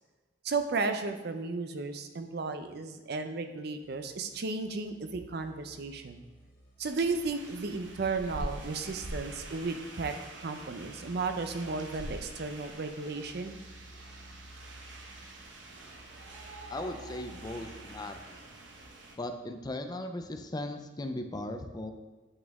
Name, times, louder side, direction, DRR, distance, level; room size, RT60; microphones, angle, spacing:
voice 1, 0.4-6.2 6.8-10.1 10.4-13.6, right 4 dB, 60° right, 7 dB, 0.5 m, -34 dB
sound 1, 3.8-18.8, right 1 dB, 50° left, 2.1 m, -55 dB
sound 2, 6.8-19.2, right 1 dB, 85° right, 0.9 m, -45 dB
voice 2, 16.7-18.4 19.1-21.9, left 1 dB, 20° left, 6 dB, 0.4 m, -38 dB
8.6 x 4.3 x 3.5 m, 1.2 s
head